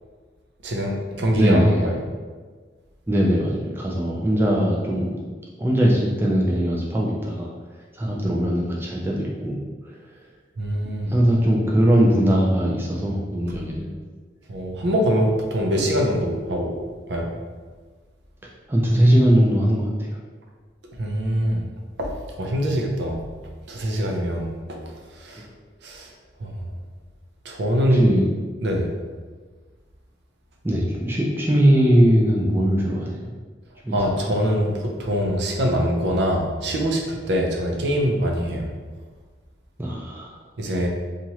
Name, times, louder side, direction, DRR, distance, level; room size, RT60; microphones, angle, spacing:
voice 1, 0.6-2.0 10.6-11.1 14.5-16.8 17.1-17.3 21.0-21.6 22.0-22.1 22.4-23.2 23.7-24.5 25.2-25.4 25.8-26.1 26.4-26.5 27.4-28.0 28.6-28.9 33.9-38.7 40.6-40.9, equal, 75° right, 0 dB, 0.5 m, -23 dB
voice 2, 1.3-1.9 3.1-5.2 5.6-7.5 8.0-9.6 11.1-13.9 15.8-15.9 18.7-20.2 27.9-28.3 30.6-33.3 33.8-34.3 39.8-40.3, equal, 10° right, -4 dB, 0.3 m, -20 dB
2.9 x 2.4 x 2.8 m, 1.5 s
head